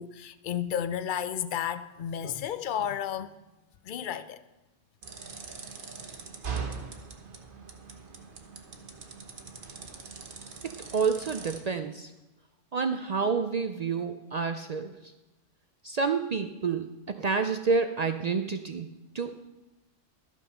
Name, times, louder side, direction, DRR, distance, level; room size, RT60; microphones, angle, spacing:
voice 1, 0.0-3.3 3.8-4.4, left 9 dB, 60° left, 0.5 m, -32 dB
sound 1, 5.0-11.6, right 5 dB, 45° right, 1.2 m, -41 dB
voice 2, 10.6-12.1 12.7-15.0 15.8-18.9 19.1-19.4, right 5 dB, 70° right, 0.3 m, -29 dB
12.5 x 6.1 x 5.7 m
omnidirectional pair, 1.3 m